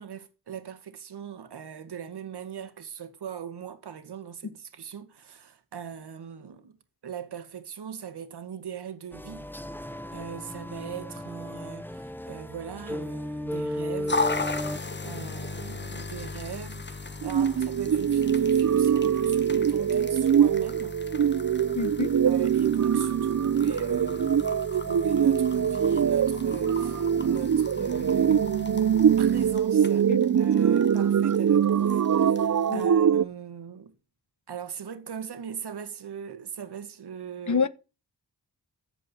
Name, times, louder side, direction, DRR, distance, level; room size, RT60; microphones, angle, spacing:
voice 1, 0.0-6.8 7.0-9.5 9.8-14.3 15.0-20.9 22.2-28.8 29.2-30.1 30.4-33.9 34.5-37.6, right 8 dB, 75° right, 2.2 m, -39 dB
sound 1, 9.1-14.8, equal, 5° left, 0.9 m, -35 dB
sound 2, 14.1-32.9, left 3 dB, 25° left, 1.5 m, -37 dB
sound 3, 17.2-33.2, right 8 dB, 45° right, 0.7 m, -23 dB
voice 2, 21.7-22.1 30.1-30.4 32.7-32.8 37.5-37.7, left 5 dB, 45° left, 1.4 m, -27 dB
14.5 x 5.2 x 9.6 m
cardioid pair, 55°, 40 cm